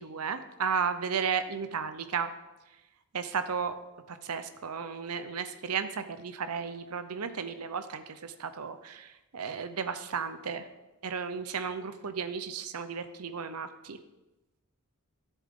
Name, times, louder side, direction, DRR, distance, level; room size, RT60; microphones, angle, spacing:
voice 1, 0.0-2.3 3.1-3.8 4.1-10.7 11.0-14.0, right 6 dB, 80° right, 10 dB, 0.7 m, -34 dB
13.0 x 7.3 x 3.7 m, 1.0 s
head